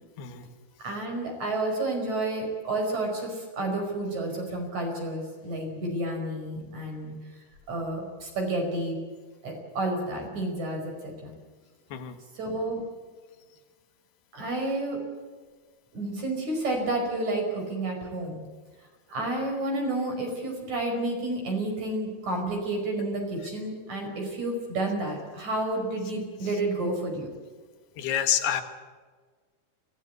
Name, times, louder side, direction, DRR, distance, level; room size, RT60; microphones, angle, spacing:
voice 1, 0.8-7.1 7.7-9.0 9.4-11.3 12.3-12.8 14.3-15.0 15.9-18.5 19.1-27.3, right 2 dB, 45° right, 2 dB, 6.4 m, -30 dB
voice 2, 28.0-28.6, left 10 dB, 85° left, 8 dB, 3.6 m, -27 dB
23.5 x 17.0 x 8.3 m, 1.4 s
omnidirectional pair, 4.5 m